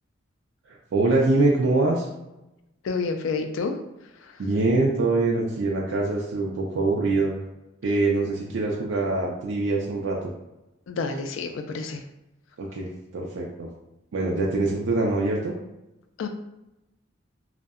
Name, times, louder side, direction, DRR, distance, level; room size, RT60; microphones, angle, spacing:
voice 1, 0.9-2.1 4.4-7.3 7.8-10.2 12.6-13.7 14.1-15.5, right 2 dB, 75° right, -2 dB, 0.4 m, -24 dB
voice 2, 2.8-3.8 4.2-4.4 10.9-12.0 16.2-16.3, left 4 dB, 80° left, 6 dB, 0.3 m, -29 dB
2.6 x 2.1 x 2.3 m, 0.94 s
head